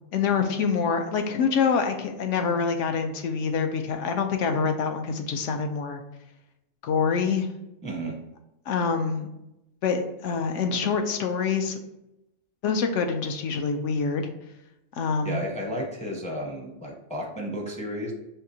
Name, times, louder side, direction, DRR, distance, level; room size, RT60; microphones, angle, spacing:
voice 1, 0.1-6.0 6.8-7.5 8.7-9.3 9.8-11.8 12.6-14.3 15.0-15.4, left 5 dB, 75° left, 5 dB, 0.9 m, -26 dB
voice 2, 7.8-8.2 15.2-18.1, equal, 10° left, -1 dB, 0.5 m, -33 dB
5.7 x 2.7 x 2.7 m, 0.90 s
omnidirectional pair, 1.3 m